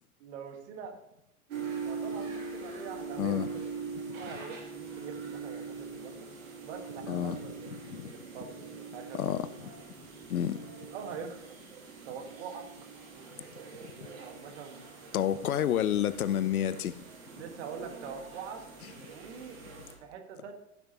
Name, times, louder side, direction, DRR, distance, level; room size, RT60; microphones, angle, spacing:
voice 1, 0.2-0.9 1.8-6.3 6.6-8.5 8.9-9.7 10.9-11.4 12.0-12.6 13.1-15.7 17.3-19.6 20.0-20.5, right 6 dB, 50° right, 1.6 m, -44 dB
sound 1, 1.5-19.9, right 5 dB, 65° right, 2.9 m, -43 dB
voice 2, 3.2-3.5 4.1-4.2 7.1-7.4 7.9-8.1 9.1-9.5 10.3-10.6 13.8-14.1 15.1-17.0, left 10 dB, 70° left, 0.6 m, -29 dB
15.0 x 6.1 x 2.9 m
figure-of-eight pair, 100°, 45 cm